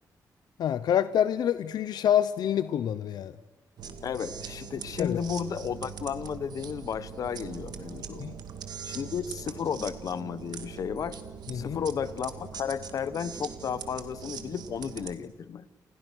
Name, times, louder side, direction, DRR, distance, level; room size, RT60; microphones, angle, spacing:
voice 1, 0.6-3.4 5.0-5.2 8.2-8.3 11.5-11.8, left 10 dB, 80° left, 14 dB, 0.8 m, -26 dB
sound 1, 3.8-15.1, right 7 dB, 80° right, 2.2 m, -42 dB
voice 2, 4.0-8.2 8.8-11.2 11.5-15.7, left 7 dB, 55° left, 15 dB, 1.1 m, -33 dB
29.5 x 28.5 x 6.3 m, 1.2 s
wide cardioid pair, 175°, 7 cm